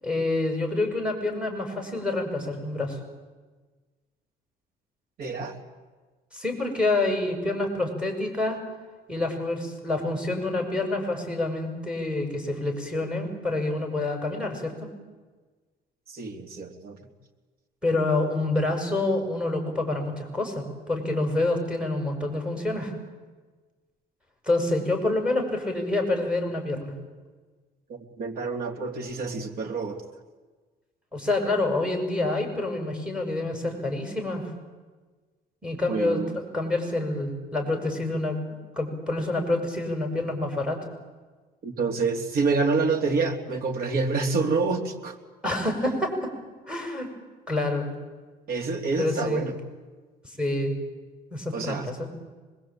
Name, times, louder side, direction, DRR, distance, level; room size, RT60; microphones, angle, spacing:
voice 1, 0.0-3.0 6.3-8.6 9.1-14.9 17.8-22.9 24.5-26.9 31.1-34.5 35.6-40.8 45.4-46.3 46.7-47.1 47.5-47.9 49.0-49.4 50.4-50.8 51.3-52.1, left 2 dB, 5° right, 4 dB, 7.1 m, -27 dB
voice 2, 5.2-5.6 16.1-17.0 27.9-30.0 35.9-36.3 41.6-45.2 48.5-49.5 51.5-51.9, right 4 dB, 60° right, 5 dB, 3.3 m, -27 dB
25.5 x 21.5 x 9.0 m, 1.3 s
cardioid pair, 110°, 17 cm